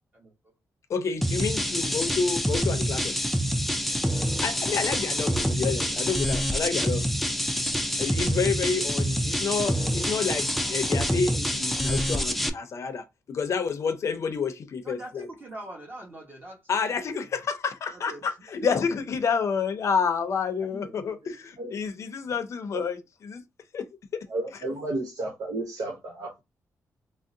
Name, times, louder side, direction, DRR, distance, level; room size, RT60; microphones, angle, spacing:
voice 1, 0.9-3.1 4.4-7.1 8.0-15.3 16.7-23.0 23.2-23.4 23.7-23.9 24.1-24.2, left 5 dB, 55° left, 0.5 m, -29 dB
sound 1, 1.2-12.5, equal, ahead, 0.3 m, -26 dB
voice 2, 3.9-4.9 14.8-16.6 17.2-17.3 17.9-18.3 18.6-19.1 20.6-20.7 21.0-21.4, right 1 dB, 35° right, 1.1 m, -44 dB
voice 3, 24.3-26.4, right 2 dB, 85° right, 0.9 m, -33 dB
3.6 x 2.0 x 2.6 m
wide cardioid pair, 140°, 6 cm